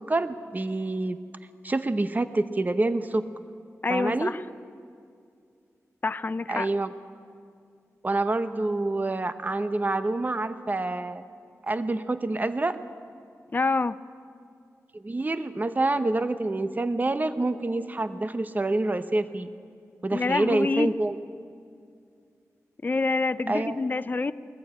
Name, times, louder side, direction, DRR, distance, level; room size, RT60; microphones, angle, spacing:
voice 1, 0.1-1.2 1.6-3.2 3.9-4.3 6.5-6.9 8.0-11.2 11.6-12.8 14.9-19.5 20.0-21.1 23.5-23.8, right 2 dB, 30° right, 11 dB, 0.8 m, -27 dB
voice 2, 3.8-4.4 6.0-6.7 13.5-14.0 20.1-21.0 22.8-24.3, left 3 dB, 35° left, 13 dB, 0.4 m, -26 dB
21.0 x 14.5 x 8.7 m, 2.3 s
cardioid pair, 70°, 6 cm